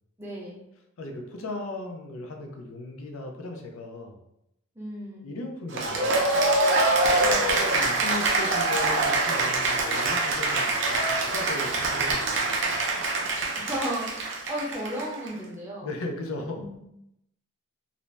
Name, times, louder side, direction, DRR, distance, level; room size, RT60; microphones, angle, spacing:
voice 1, 0.2-0.6 4.8-5.3 7.2-7.8 13.6-15.9 16.5-16.8, equal, 10° right, -5 dB, 0.6 m, -35 dB
voice 2, 1.0-4.2 5.2-6.3 7.7-12.5 15.8-16.6, left 2 dB, 85° left, 2 dB, 0.5 m, -37 dB
Cheering / Applause, 5.7-15.3, right 2 dB, 60° right, 0.5 m, -24 dB
2.5 x 2.0 x 3.2 m, 0.81 s
head